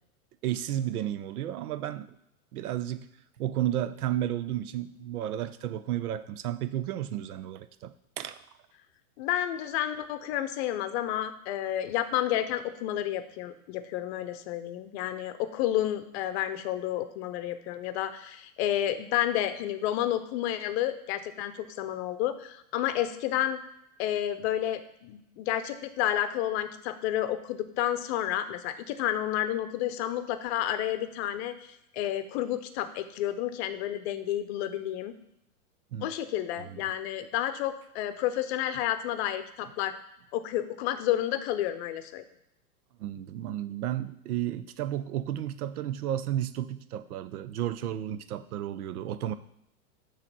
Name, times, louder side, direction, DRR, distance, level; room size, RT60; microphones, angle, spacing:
voice 1, 0.4-2.2 2.5-3.1 3.4-8.4 35.9-36.1 36.7-36.8 43.0-49.3, right 11 dB, 75° right, 13 dB, 0.7 m, -32 dB
voice 2, 9.2-23.6 24.0-35.1 36.0-39.9 40.3-42.2, left 12 dB, 45° left, 10 dB, 0.7 m, -30 dB
6.7 x 3.2 x 6.0 m, 0.80 s
hypercardioid pair, 125°, 44 cm